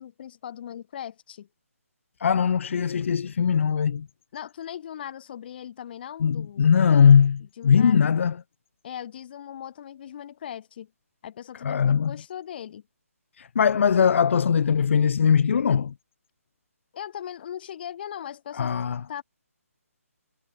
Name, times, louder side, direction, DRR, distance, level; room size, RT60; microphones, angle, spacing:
voice 1, 0.0-1.5 4.3-6.8 7.6-8.1 8.8-10.9 11.2-12.8 16.9-19.2, left 10 dB, 40° left, 3.9 m, -39 dB
voice 2, 2.2-4.1 6.2-8.4 11.6-12.2 13.4-15.9 18.6-19.0, left 7 dB, 55° left, 0.4 m, -20 dB
figure-of-eight pair, 155°, 8 cm